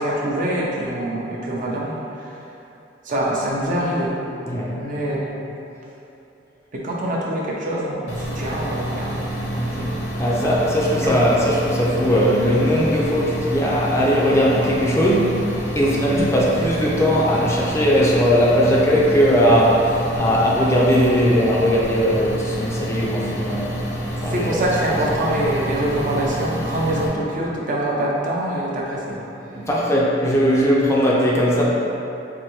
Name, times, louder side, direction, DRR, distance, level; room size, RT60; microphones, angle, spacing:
voice 1, 0.0-2.0 3.1-4.1 4.8-5.5 6.7-9.3 9.6-9.7 11.0-11.2 16.0-16.3 24.3-29.2, right 1 dB, 45° right, -4 dB, 0.6 m, -24 dB
voice 2, 4.5-4.8 9.5-9.9 10.2-15.4 15.7-23.7 24.2-24.7 29.5-31.6, equal, 15° left, -5 dB, 0.4 m, -19 dB
sound 1, 8.1-27.1, right 1 dB, 65° left, 0.7 m, -28 dB
4.4 x 2.6 x 3.0 m, 2.8 s
head